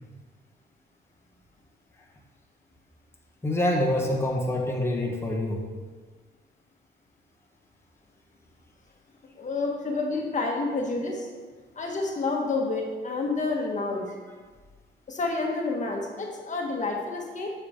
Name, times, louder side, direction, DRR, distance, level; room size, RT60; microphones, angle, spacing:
voice 1, 3.4-5.7, left 1 dB, 10° left, -2 dB, 1.3 m, -26 dB
voice 2, 9.4-11.3 11.7-14.1 15.1-17.5, left 3 dB, 40° left, 0 dB, 1.3 m, -29 dB
8.4 x 5.8 x 3.6 m, 1.4 s
cardioid pair, 90°, 20 cm